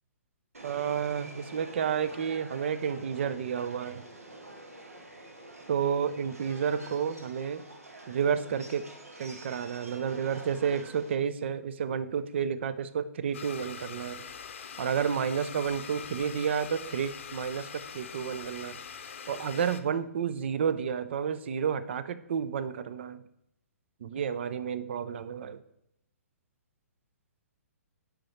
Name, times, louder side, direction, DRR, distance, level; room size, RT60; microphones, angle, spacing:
Subway metro underground, 0.5-11.1, right 1 dB, 75° right, 1.4 m, -47 dB
voice 1, 0.6-4.0 5.7-7.6 8.1-8.9 9.2-14.2 14.8-18.8 19.3-23.2 24.0-25.6, right 7 dB, 50° right, 14 dB, 0.5 m, -31 dB
Domestic sounds home sounds, 13.3-19.8, left 7 dB, 55° left, 0.7 m, -43 dB
7.6 x 5.1 x 4.3 m, 0.80 s
figure-of-eight pair, 120°, 8 cm